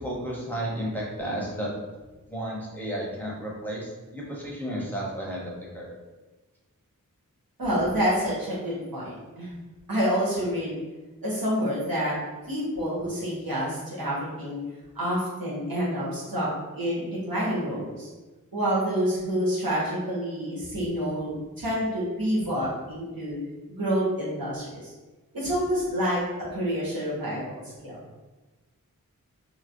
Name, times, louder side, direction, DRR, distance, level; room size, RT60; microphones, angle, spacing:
voice 1, 0.0-1.7 2.3-5.9, right 1 dB, 5° left, -5 dB, 0.8 m, -33 dB
voice 2, 7.6-9.5 9.9-10.8 11.2-12.2 12.5-14.6 14.9-18.1 18.5-23.4 23.7-24.9 25.3-26.2 26.5-28.0, equal, 80° right, -7 dB, 1.2 m, -28 dB
3.0 x 2.9 x 2.5 m, 1.2 s
wide cardioid pair, 55°, 34 cm